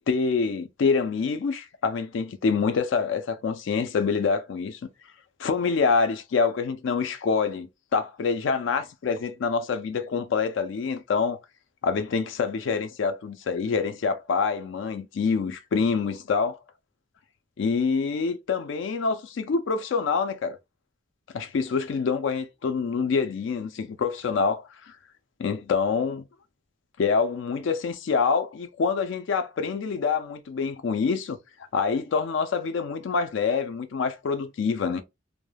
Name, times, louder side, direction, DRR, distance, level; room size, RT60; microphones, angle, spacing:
voice 1, 0.0-4.9 5.4-11.4 11.8-16.6 17.6-20.6 21.3-25.0 25.4-26.2 27.0-31.4 31.7-35.0, left 5 dB, 65° left, 0.4 m, -26 dB
2.2 x 2.1 x 3.1 m
head